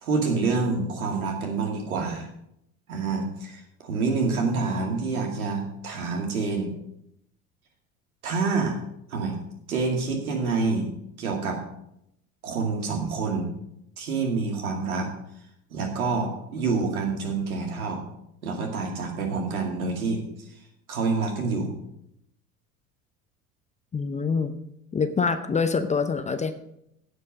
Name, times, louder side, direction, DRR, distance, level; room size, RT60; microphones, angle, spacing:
voice 1, 0.0-2.3 2.9-6.7 8.2-8.8 9.1-9.3 9.7-10.9 11.2-11.6 12.4-13.5 14.0-15.1 15.7-18.0 18.4-20.5 20.9-21.7, right 4 dB, 75° right, 2 dB, 2.5 m, -27 dB
voice 2, 23.9-24.5 24.9-26.5, left 5 dB, 15° left, 9 dB, 0.7 m, -25 dB
16.0 x 5.5 x 5.2 m, 0.78 s
figure-of-eight pair, 70°, 43 cm